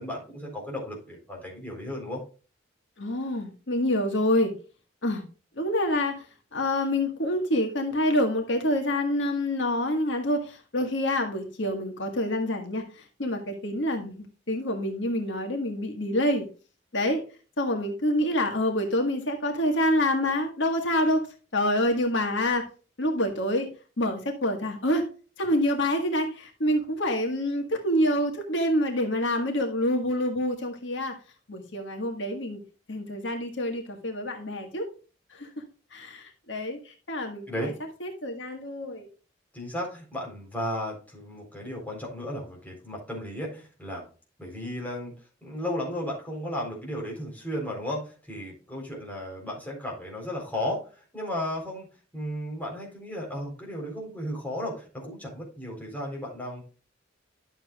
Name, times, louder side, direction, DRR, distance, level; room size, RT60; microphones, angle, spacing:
voice 1, 0.0-2.2 37.5-37.7 39.5-44.1 44.4-45.1 45.4-51.9 52.1-56.6, left 1 dB, 10° left, -2 dB, 4.0 m, -34 dB
voice 2, 3.0-4.5 5.0-5.2 5.5-6.3 6.5-16.5 16.9-17.2 17.6-21.3 21.5-22.7 23.0-23.7 24.0-25.1 25.4-31.1 31.5-32.6 32.9-34.9 35.3-35.5 35.9-37.7 38.0-39.1, left 1 dB, 75° left, 4 dB, 1.7 m, -27 dB
11.5 x 7.3 x 2.4 m, 0.35 s
head